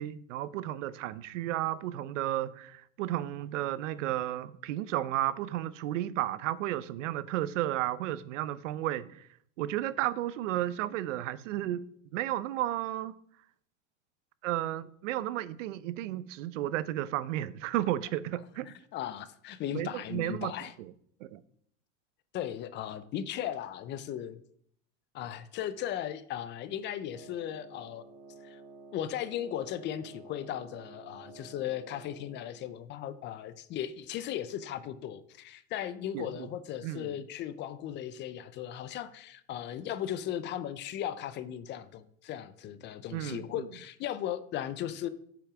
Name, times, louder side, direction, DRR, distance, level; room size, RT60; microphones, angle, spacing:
voice 1, 0.0-9.3 9.6-11.9 12.1-13.1 14.4-18.7 19.7-20.5 20.8-20.9 21.2-21.4 36.1-36.5 36.8-37.1 43.1-43.7, right 13 dB, 85° right, 0.7 m, -33 dB
voice 2, 18.7-20.7 22.3-24.4 25.1-28.0 28.4-28.6 28.9-45.1, left 11 dB, 30° left, 0.5 m, -37 dB
Wind instrument woodwind instrument, 27.0-32.7, right 3 dB, 20° right, 2.5 m, -51 dB
8.4 x 5.9 x 6.0 m
supercardioid pair, 145°, 36 cm